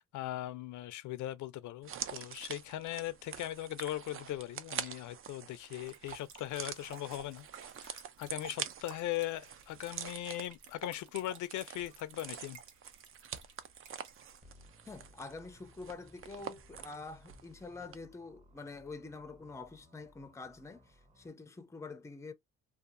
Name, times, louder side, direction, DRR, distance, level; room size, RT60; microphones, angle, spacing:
voice 1, 0.0-7.5 7.8-12.6, left 14 dB, 75° left, 0.5 m, -39 dB
sound 1, 1.8-17.5 17.8-18.0, right 8 dB, 45° right, 0.5 m, -46 dB
sound 2, 5.8-14.4, right 7 dB, 75° right, 0.9 m, -54 dB
sound 3, 14.4-21.3, left 1 dB, 25° right, 1.0 m, -61 dB
voice 2, 14.9-22.3, left 3 dB, 10° left, 0.5 m, -46 dB
2.7 x 2.4 x 2.5 m
cardioid pair, 90°, 30 cm